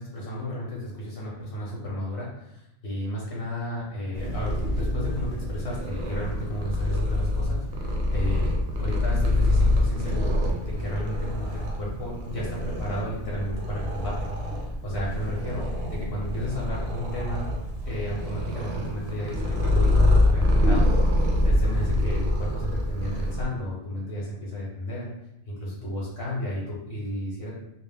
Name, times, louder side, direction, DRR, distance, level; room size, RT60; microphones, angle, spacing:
voice 1, 0.0-17.5 17.9-20.0 20.2-20.9 21.1-25.1 25.5-27.5, equal, 60° left, -5 dB, 0.8 m, -33 dB
Purr, 4.1-23.5, left 1 dB, 70° right, 0.8 m, -25 dB
2.3 x 2.0 x 3.2 m, 0.86 s
omnidirectional pair, 1.2 m